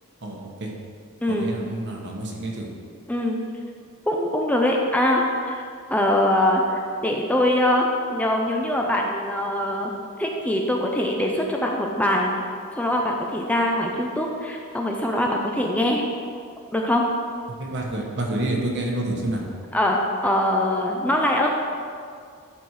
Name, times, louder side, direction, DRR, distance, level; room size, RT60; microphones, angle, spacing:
voice 1, 0.2-0.7 1.3-2.7 17.6-19.4, right 1 dB, 55° right, 0 dB, 1.4 m, -28 dB
voice 2, 4.1-5.6 5.9-9.9 10.2-12.3 12.8-16.0 16.7-17.0 19.7-21.5, left 1 dB, 5° left, 0 dB, 0.6 m, -23 dB
12.0 x 4.4 x 4.8 m, 2.2 s
head